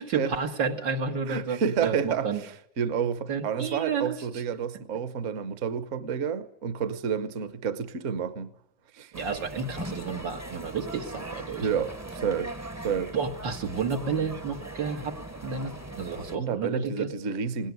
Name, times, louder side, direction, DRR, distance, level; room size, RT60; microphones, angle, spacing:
voice 1, 0.0-2.4 3.3-4.2 9.1-11.7 13.1-15.2 15.4-17.1, right 5 dB, 85° right, 2.5 m, -31 dB
voice 2, 1.3-8.5 8.9-9.1 11.6-12.5 12.8-13.1 16.3-17.7, right 7 dB, 50° right, 1.2 m, -30 dB
sound 1, 9.1-16.4, right 1 dB, 15° right, 0.7 m, -40 dB
18.5 x 18.0 x 9.4 m
omnidirectional pair, 1.9 m